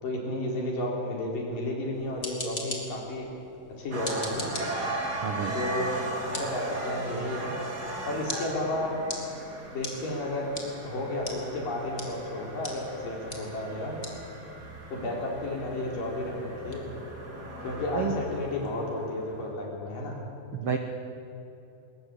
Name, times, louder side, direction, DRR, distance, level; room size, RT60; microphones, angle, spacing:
voice 1, 0.0-3.3 3.8-4.5 5.5-5.9 6.2-7.5 8.1-9.0 9.7-10.5 10.8-14.0 14.9-16.9 17.6-20.2, left 1 dB, 60° left, -1 dB, 5.6 m, -32 dB
sound 1, 1.9-18.7, left 2 dB, 20° left, 2.6 m, -43 dB
sound 2, 3.9-19.2, right 2 dB, 25° right, 3.2 m, -38 dB
voice 2, 5.2-5.5 17.9-18.1 20.5-20.8, right 7 dB, 70° right, 5 dB, 1.3 m, -29 dB
21.0 x 20.5 x 8.5 m, 2.9 s
omnidirectional pair, 4.3 m